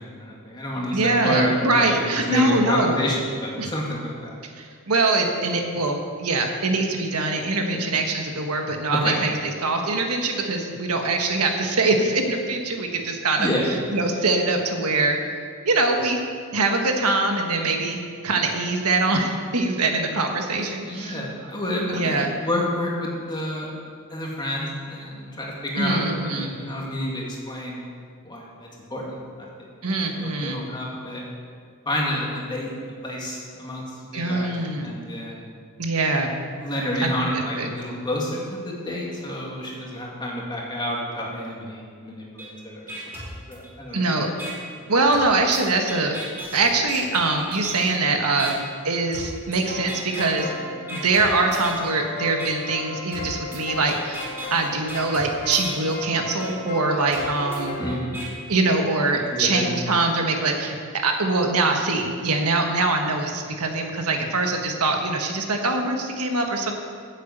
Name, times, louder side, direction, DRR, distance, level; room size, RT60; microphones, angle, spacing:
voice 1, 0.0-4.4 7.7-7.9 8.9-9.2 13.4-13.7 20.8-23.7 24.1-27.8 28.2-29.2 30.2-31.2 31.9-32.7 33.0-33.8 34.1-35.4 36.6-43.1 43.5-44.1 57.8-58.1 59.3-59.7, left 1 dB, 20° left, -3 dB, 2.2 m, -29 dB
voice 2, 0.9-3.0 3.6-3.7 4.4-13.5 13.9-15.2 15.6-16.2 16.5-21.2 21.9-22.3 25.8-26.5 29.8-30.7 34.1-34.9 35.8-36.3 37.0-37.1 37.5-37.7 43.9-44.3 44.9-46.2 46.5-48.6 48.8-50.5 50.9-57.8 58.5-60.8 61.0-66.7, right 3 dB, 80° right, 3 dB, 1.5 m, -23 dB
sound 1, 42.4-42.5 42.9-43.9 44.4-44.5 45.1-48.0 48.4-48.5 49.1-49.6 49.9-50.5 50.9-51.9 52.4-52.5 53.1-56.0 56.4-56.5 57.1-58.3, right 1 dB, 10° right, 2.9 m, -37 dB
sound 2, 49.6-58.0, left 3 dB, 45° left, 2.6 m, -35 dB
10.0 x 8.1 x 8.1 m, 2.1 s
head